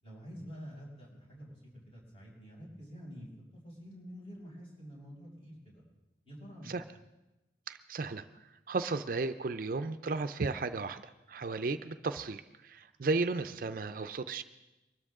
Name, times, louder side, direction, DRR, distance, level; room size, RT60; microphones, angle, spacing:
voice 1, 0.0-3.3 3.6-5.8 6.2-6.9, equal, 30° left, -4 dB, 6.1 m, -48 dB
voice 2, 7.7-8.3 8.7-11.0 11.3-14.4, right 3 dB, 50° right, 10 dB, 0.5 m, -34 dB
23.5 x 13.0 x 3.7 m, 1.0 s
head